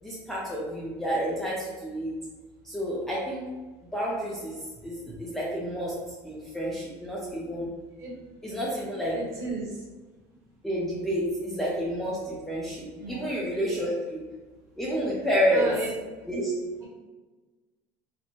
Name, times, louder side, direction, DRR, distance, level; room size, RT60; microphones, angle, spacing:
voice 1, 0.0-2.1 2.6-3.4 3.9-4.6 4.8-5.9 6.2-7.7 8.4-9.2 10.6-14.2 14.8-15.7 16.3-16.5, equal, 5° left, -6 dB, 0.4 m, -29 dB
voice 2, 9.1-9.7 13.0-13.2 15.5-15.9, right 3 dB, 35° right, -4 dB, 1.0 m, -34 dB
4.3 x 2.0 x 2.8 m, 1.3 s
cardioid pair, 170°, 8 cm